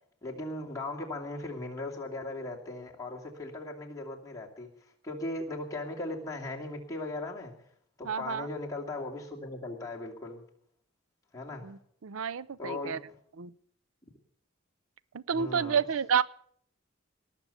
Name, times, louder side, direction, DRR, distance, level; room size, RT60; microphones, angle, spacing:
voice 1, 0.2-4.7 5.0-7.5 8.0-10.4 11.3-11.7 12.6-13.1 15.3-15.8, left 2 dB, 15° left, -2 dB, 2.5 m, -38 dB
voice 2, 8.0-8.5 11.6-13.0 13.4-13.5 15.1-16.2, right 7 dB, 90° right, 18 dB, 0.5 m, -30 dB
18.5 x 6.8 x 8.2 m, 0.65 s
head